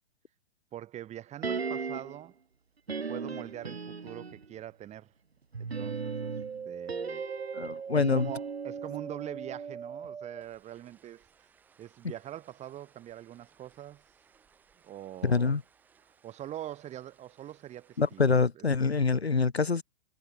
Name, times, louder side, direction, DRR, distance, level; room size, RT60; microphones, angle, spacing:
voice 1, 0.7-2.4 3.1-5.1 5.6-6.3 6.6-7.2 7.9-11.3 11.8-14.0 14.8-15.5 16.2-18.7 19.1-19.2, right 12 dB, 20° right, 4.7 m, -43 dB
sound 1, 1.4-2.2 2.9-4.5 5.5-9.8 10.0-10.1, right 5 dB, 85° right, 1.3 m, -37 dB
sound 2, 5.7-15.2 15.4-16.3 16.6-17.6 17.9-18.0, right 6 dB, 5° right, 0.4 m, -43 dB
voice 2, 7.5-8.3 15.2-15.6 18.0-19.8, left 4 dB, 85° left, 1.0 m, -25 dB
figure-of-eight pair, 115°, 31 cm